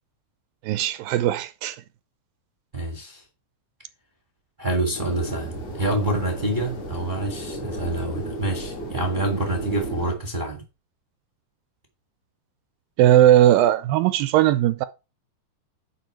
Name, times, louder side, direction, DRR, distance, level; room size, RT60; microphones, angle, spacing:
voice 1, 0.6-1.8 13.0-14.9, right 12 dB, 80° right, 2.3 m, -18 dB
voice 2, 2.7-3.2 4.6-10.6, right 1 dB, 20° right, 1.3 m, -27 dB
sound 1, 4.9-10.1, right 1 dB, 45° left, 3.7 m, -34 dB
10.5 x 5.0 x 4.5 m
omnidirectional pair, 4.2 m